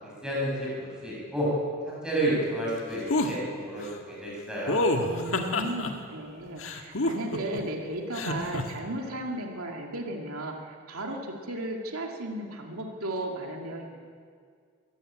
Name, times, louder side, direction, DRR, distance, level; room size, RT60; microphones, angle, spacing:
voice 1, 0.2-1.5 2.0-3.4 3.7-4.8, right 1 dB, 5° right, -6 dB, 7.3 m, -30 dB
sound 1, 3.1-3.3 4.7-5.9 6.6-7.6 8.1-8.6, left 2 dB, 65° left, 1.9 m, -27 dB
voice 2, 5.0-14.1, right 1 dB, 80° right, 1 dB, 2.5 m, -35 dB
23.0 x 15.5 x 8.8 m, 2.1 s
head